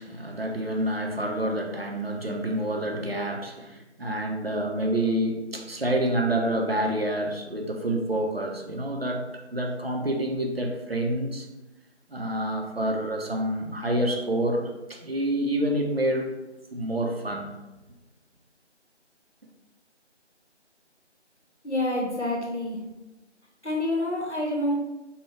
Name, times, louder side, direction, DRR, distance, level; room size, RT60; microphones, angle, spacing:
voice 1, 0.0-11.5 12.1-16.3 16.7-17.5, right 1 dB, 55° right, 1 dB, 0.7 m, -28 dB
voice 2, 21.6-22.8 23.6-24.8, left 1 dB, 70° left, -1 dB, 1.3 m, -27 dB
5.5 x 2.3 x 3.2 m, 1.0 s
figure-of-eight pair, 170°, 35 cm